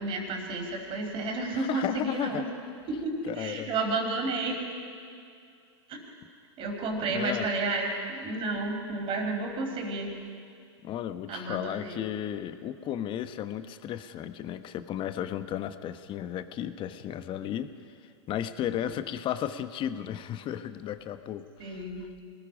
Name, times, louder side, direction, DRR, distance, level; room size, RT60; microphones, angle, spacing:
voice 1, 0.0-2.5 2.9-4.6 5.9-6.0 6.6-10.2 11.3-12.0 18.8-19.0 21.6-22.0, right 2 dB, 35° right, 1 dB, 4.7 m, -31 dB
voice 2, 1.5-2.4 3.3-3.7 7.0-7.5 10.8-17.7 18.3-21.8, left 10 dB, 35° left, 10 dB, 1.1 m, -34 dB
26.0 x 20.0 x 5.1 m, 2.3 s
hypercardioid pair, 110°, 15 cm